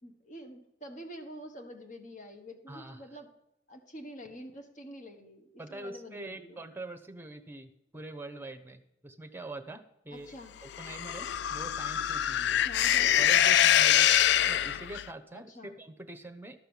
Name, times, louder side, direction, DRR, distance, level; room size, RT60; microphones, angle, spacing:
voice 1, 0.0-3.3 3.7-6.6 10.1-10.5 12.6-13.1 15.3-15.8, equal, 45° left, 4 dB, 1.7 m, -47 dB
voice 2, 2.7-3.1 5.6-10.3 10.6-12.6 13.1-14.1 14.5-16.6, right 2 dB, 10° right, 7 dB, 0.9 m, -44 dB
sound 1, 10.8-15.1, left 11 dB, 60° left, 0.3 m, -24 dB
13.0 x 5.6 x 7.3 m, 0.84 s
head